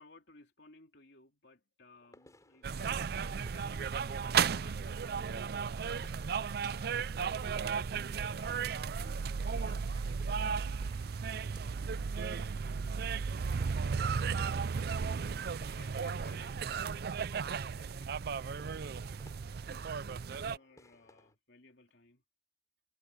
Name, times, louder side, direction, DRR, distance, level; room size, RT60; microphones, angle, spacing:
voice 1, 0.0-7.4 8.0-10.0 15.7-16.7 17.8-18.1 19.7-22.2, left 3 dB, 85° left, 3.0 m, -60 dB
sound 1, 1.9-21.4, left 1 dB, 20° left, 6.0 m, -65 dB
sound 2, 2.6-20.6, right 6 dB, 65° right, 0.5 m, -35 dB
sound 3, 4.3-12.5, right 5 dB, 30° right, 4.4 m, -65 dB
voice 2, 11.2-15.0 15.6-16.8 17.3-18.5, right 2 dB, 85° right, 2.8 m, -63 dB
head